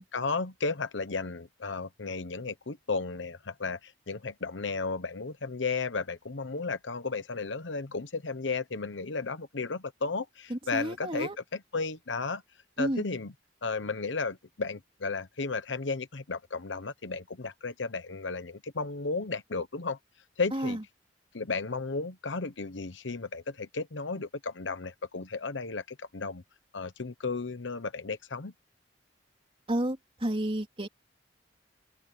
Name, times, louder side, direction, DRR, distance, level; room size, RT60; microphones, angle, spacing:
voice 1, 0.1-12.4 12.8-13.3 13.6-20.0 20.4-20.8 21.3-26.4 26.7-28.5, left 4 dB, 70° left, 1.0 m, -34 dB
voice 2, 10.5-11.4 12.8-13.0 20.5-20.8 29.7-30.9, right 1 dB, 30° right, 3.5 m, -31 dB
open air
head